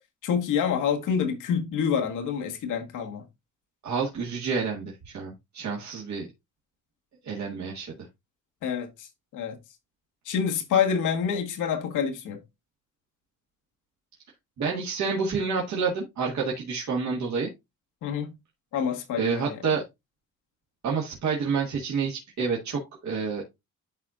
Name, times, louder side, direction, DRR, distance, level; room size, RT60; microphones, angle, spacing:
voice 1, 0.2-3.2 8.6-9.1 9.3-9.6 10.2-12.4 18.0-18.3 18.7-19.6, left 7 dB, 85° left, 1.6 m, -27 dB
voice 2, 3.8-6.3 7.2-8.1 14.6-17.5 19.2-19.8 20.8-23.4, right 5 dB, 65° right, 1.9 m, -29 dB
12.0 x 4.2 x 2.5 m
cardioid pair, 90°, 30 cm